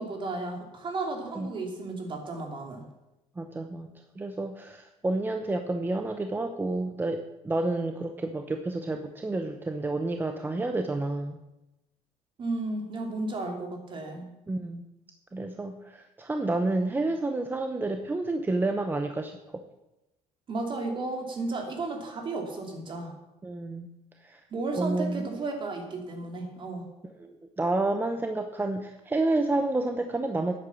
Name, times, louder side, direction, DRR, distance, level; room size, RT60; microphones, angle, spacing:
voice 1, 0.0-2.8 12.4-14.2 20.5-23.1 24.5-26.9, right 3 dB, 40° right, 3 dB, 3.0 m, -33 dB
voice 2, 3.4-3.9 4.2-11.4 14.5-14.8 15.3-19.6 23.4-23.9 24.2-24.4 24.7-25.4 27.2-30.5, right 2 dB, 15° right, 6 dB, 0.8 m, -30 dB
10.0 x 9.1 x 7.1 m, 0.96 s
cardioid pair, 125°, 13 cm